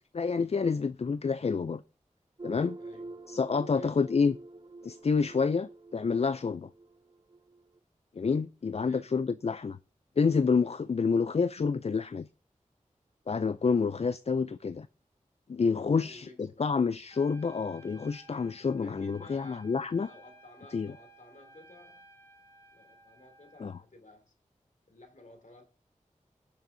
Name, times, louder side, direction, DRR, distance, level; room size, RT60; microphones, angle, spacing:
voice 1, 0.1-1.8 2.4-2.8 3.3-4.3 4.8-6.7 8.2-9.8 10.2-12.3 13.3-14.9 15.5-20.1 20.7-20.9 23.6-23.7, left 5 dB, 50° left, 0.4 m, -28 dB
sound 1, 2.4-7.8, right 2 dB, 35° right, 0.7 m, -47 dB
voice 2, 2.8-3.2 3.7-4.1 8.8-9.2 15.9-16.7 18.8-22.1 22.7-24.3 24.9-25.6, left 2 dB, 65° left, 3.0 m, -55 dB
Trumpet, 17.1-23.8, right 1 dB, 20° left, 3.9 m, -57 dB
20.0 x 6.8 x 2.7 m
wide cardioid pair, 45°, 14 cm